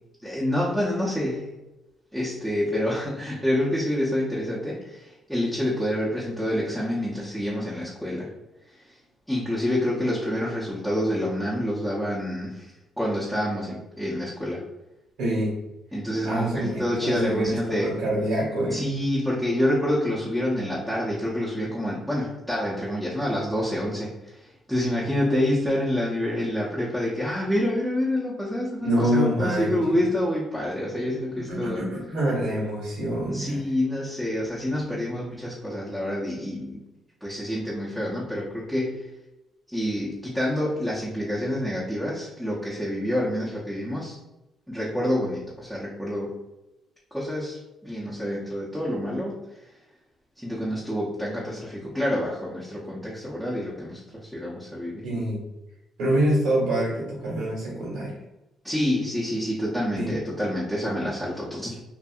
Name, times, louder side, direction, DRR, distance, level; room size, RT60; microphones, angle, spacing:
voice 1, 0.2-1.6 2.1-8.3 8.7-9.0 9.3-12.7 13.0-14.6 15.9-18.0 18.7-31.8 33.3-36.8 37.2-39.1 39.7-44.2 44.7-46.4 47.1-49.7 50.4-55.1 58.6-61.8, left 1 dB, ahead, -8 dB, 0.7 m, -27 dB
voice 2, 15.2-15.5 16.2-18.8 28.8-30.0 31.5-33.6 55.0-55.4 56.0-58.2 60.0-60.3, right 1 dB, 85° right, -5 dB, 1.4 m, -26 dB
2.6 x 2.5 x 2.4 m, 0.97 s
cardioid pair, 90°, 0 cm